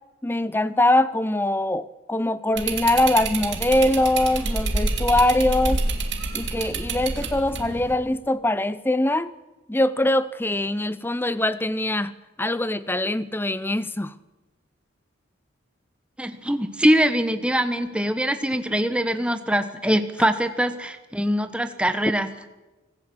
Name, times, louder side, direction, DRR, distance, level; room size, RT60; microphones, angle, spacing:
voice 1, 0.2-5.8 6.3-9.3 9.7-12.1 12.4-14.1, left 1 dB, 10° left, 0.6 m, -22 dB
sound 1, 2.6-8.0, right 3 dB, 55° right, 2.3 m, -27 dB
voice 2, 16.2-22.3, equal, 5° right, 1.1 m, -23 dB
25.5 x 15.0 x 7.8 m
head